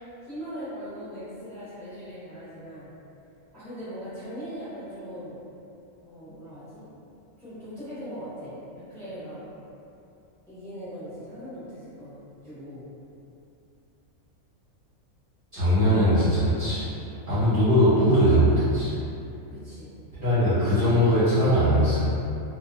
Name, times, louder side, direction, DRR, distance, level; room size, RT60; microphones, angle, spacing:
voice 1, 0.2-2.9 3.5-5.4 6.0-6.9 7.4-9.5 10.5-12.2 12.4-12.8 15.5-15.9 16.5-16.7 19.5-19.9, equal, 5° left, -13 dB, 0.5 m, -40 dB
voice 2, 15.5-16.8 17.3-18.9 20.2-22.1, equal, 50° right, -14 dB, 0.7 m, -20 dB
2.3 x 2.3 x 2.3 m, 2.7 s
omnidirectional pair, 1.5 m